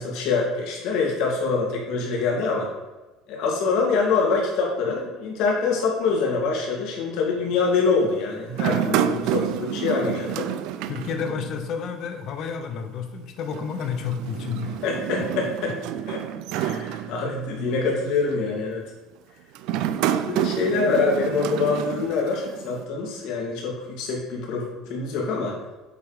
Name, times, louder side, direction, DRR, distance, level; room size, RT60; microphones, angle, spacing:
voice 1, 0.0-2.7 3.3-10.5 14.8-15.7 16.1-16.2 16.5-18.8 20.1-25.6, left 4 dB, 70° left, -1 dB, 2.2 m, -25 dB
sound 1, 8.5-11.9 12.2-12.3 13.5-17.7 18.3-18.6 19.5-22.8, right 10 dB, 70° right, 0.4 m, -29 dB
voice 2, 10.9-14.8 15.2-15.5, left 6 dB, 50° left, 6 dB, 0.9 m, -31 dB
7.9 x 3.5 x 4.9 m, 1.1 s
cardioid pair, 145°, 0 cm